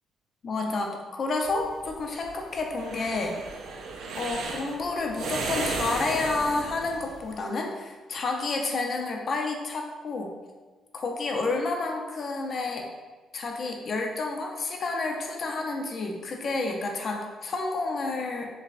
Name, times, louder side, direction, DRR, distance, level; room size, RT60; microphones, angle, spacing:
voice 1, 0.4-3.4 4.1-10.3 10.9-12.9 13.3-18.5, left 3 dB, 50° left, 2 dB, 0.6 m, -30 dB
sound 1, 1.5-7.3, right 3 dB, 75° right, 0.5 m, -34 dB
6.5 x 2.3 x 2.5 m, 1.3 s
cardioid pair, 90°, 0 cm